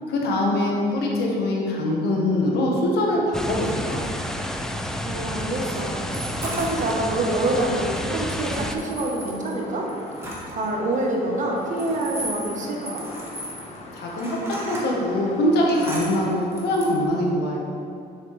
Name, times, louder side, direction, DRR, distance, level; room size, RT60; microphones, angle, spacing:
voice 1, 0.1-4.0 13.9-17.6, left 1 dB, 75° left, -2 dB, 1.4 m, -23 dB
sound 1, 3.3-8.8, equal, 5° left, 0.5 m, -30 dB
voice 2, 5.0-6.0 6.4-9.9 10.5-13.1, right 2 dB, 45° right, 0 dB, 1.3 m, -26 dB
sound 2, 5.5-16.4, left 2 dB, 40° left, 1.2 m, -42 dB
sound 3, 6.1-7.3 8.5-10.7 11.6-14.9 15.4-17.1, right 1 dB, 15° right, 1.6 m, -36 dB
7.2 x 6.4 x 3.4 m, 2.6 s
cardioid pair, 110°, 17 cm